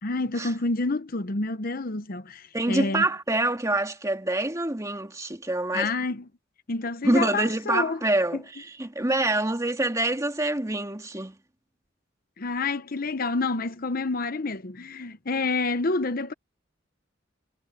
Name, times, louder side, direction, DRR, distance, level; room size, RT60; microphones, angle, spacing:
voice 1, 0.0-3.0 5.7-6.3 6.7-8.0 8.3-8.4 12.4-16.3, left 3 dB, 50° left, 0.9 m, -28 dB
voice 2, 2.5-5.9 7.0-11.4, right 2 dB, 15° right, 1.9 m, -26 dB
head